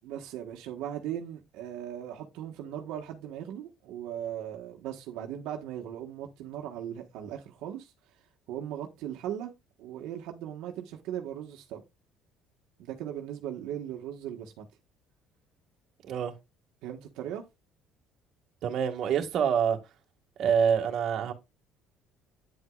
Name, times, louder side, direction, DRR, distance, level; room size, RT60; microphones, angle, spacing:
voice 1, 0.0-7.9 8.5-9.5 9.8-11.8 12.8-14.6 16.8-17.4, right 10 dB, 75° right, 1.4 m, -38 dB
voice 2, 18.6-19.8 20.4-21.3, right 7 dB, 55° right, 2.0 m, -26 dB
9.3 x 8.1 x 2.4 m
cardioid pair, 125°, 0 cm